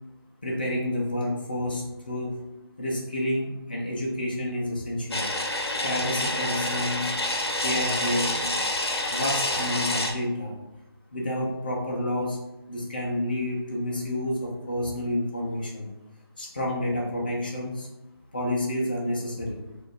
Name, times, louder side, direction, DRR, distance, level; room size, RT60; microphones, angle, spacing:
voice 1, 0.4-2.4 2.8-5.3 5.8-7.1 7.6-8.5 9.1-10.5 11.1-12.4 12.7-15.9 16.4-17.9 18.3-19.6, left 1 dB, 20° left, -3 dB, 0.4 m, -29 dB
sound 1, 5.1-10.1, left 1 dB, 75° left, 0.7 m, -28 dB
3.9 x 2.4 x 3.3 m, 0.97 s
figure-of-eight pair, 165°, 13 cm